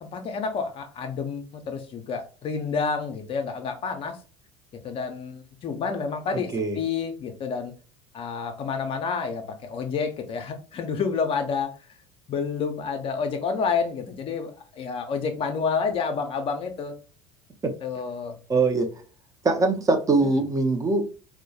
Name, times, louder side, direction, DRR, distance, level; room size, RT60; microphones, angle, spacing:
voice 1, 0.0-4.2 4.8-7.7 8.1-11.7 12.3-16.9 17.8-18.3 20.2-20.3, left 5 dB, 40° left, 0.5 m, -29 dB
voice 2, 6.3-6.8 17.6-17.7 18.5-18.9 19.4-21.0, right 3 dB, 20° right, 0.5 m, -22 dB
2.2 x 2.1 x 2.7 m
hypercardioid pair, 70°, 15 cm